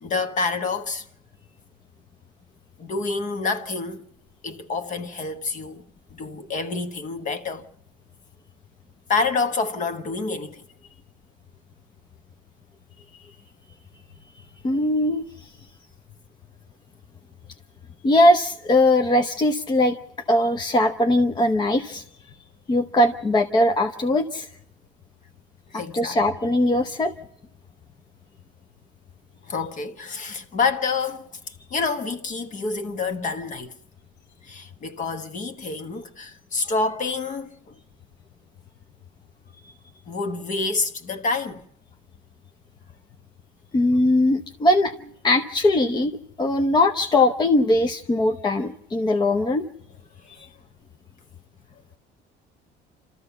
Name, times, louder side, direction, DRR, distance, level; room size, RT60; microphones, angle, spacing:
voice 1, 0.0-1.1 2.8-4.0 4.4-5.8 6.1-7.7 9.1-10.6 25.7-26.2 29.5-31.3 31.7-33.8 34.4-37.8 40.1-41.6 50.2-50.3, left 4 dB, 40° left, 1.3 m, -28 dB
voice 2, 14.6-15.5 18.0-20.0 20.3-22.0 22.7-24.5 25.7-27.1 43.7-46.1 46.4-49.7, left 1 dB, 20° left, 0.7 m, -20 dB
28.0 x 13.5 x 7.0 m
cardioid pair, 165°, 20 cm